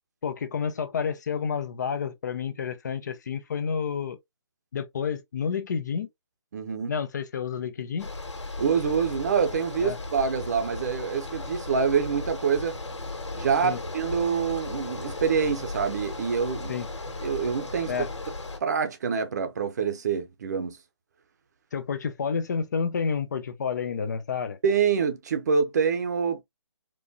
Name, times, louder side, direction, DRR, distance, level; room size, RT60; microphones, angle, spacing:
voice 1, 0.2-4.2 4.7-6.1 6.9-8.1 9.8-10.0 13.6-13.8 16.7-16.9 17.9-18.1 21.7-24.6, left 6 dB, 40° left, 0.7 m, -30 dB
voice 2, 6.5-6.9 8.6-12.7 13.3-16.7 17.2-17.9 18.6-20.8 24.6-26.4, right 6 dB, 40° right, 0.8 m, -26 dB
Bicycle, 8.0-18.6, left 2 dB, 85° left, 1.8 m, -36 dB
4.6 x 2.5 x 2.7 m
hypercardioid pair, 160°, 15 cm